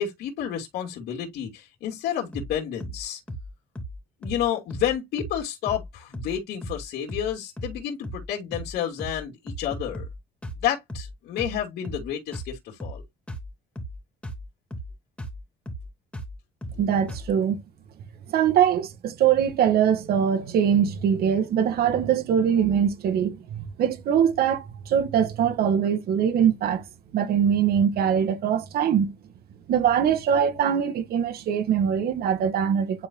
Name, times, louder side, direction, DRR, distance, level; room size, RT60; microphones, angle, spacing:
voice 1, 0.0-3.2 4.2-10.1 10.6-13.0, left 10 dB, 75° left, 2.5 m, -30 dB
sound 1, 2.3-2.5 2.8-3.0 3.3-3.5 3.8-4.0 4.2-4.4 4.7-4.9 5.2-5.4 5.7-5.9 6.1-6.4 6.6-6.8 7.1-7.3 7.6-7.8 8.0-8.3 8.5-8.7 9.0-9.2 9.5-10.2 10.4-10.6 10.9-11.1 11.4-11.6 11.8-12.1 12.3-12.5 12.8-13.0 13.3-13.5 13.8-14.0 14.2-14.4 14.7-14.9 15.2-15.4 15.7-15.9 16.1-16.3 16.6-16.8 17.1-17.3, equal, 5° left, 2.9 m, -36 dB
voice 2, 16.8-17.6 18.3-26.8 27.1-29.2 29.7-33.1, right 8 dB, 65° right, 1.9 m, -22 dB
10.5 x 4.4 x 2.3 m
cardioid pair, 110°, 17 cm